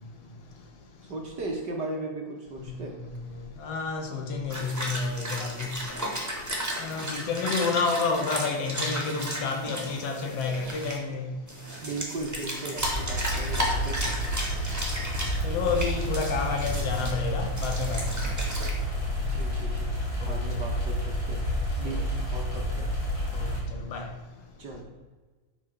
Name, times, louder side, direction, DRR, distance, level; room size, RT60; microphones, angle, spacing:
voice 1, 1.1-2.9 11.8-14.2 19.3-19.9 20.2-21.4 21.8-22.9 24.6-24.8, right 2 dB, 50° right, 1.4 m, -36 dB
voice 2, 3.6-5.7 6.8-11.3 13.4-13.5 15.4-18.0 20.2-20.3 21.9-22.0 23.3-23.5 23.9-24.1, left 4 dB, 60° left, 2.2 m, -29 dB
sound 1, 4.5-11.0 11.5-17.1 17.6-18.7, equal, 5° right, 1.7 m, -34 dB
sound 2, 12.8-23.6, equal, 40° left, 4.0 m, -30 dB
10.0 x 6.6 x 6.0 m
omnidirectional pair, 3.4 m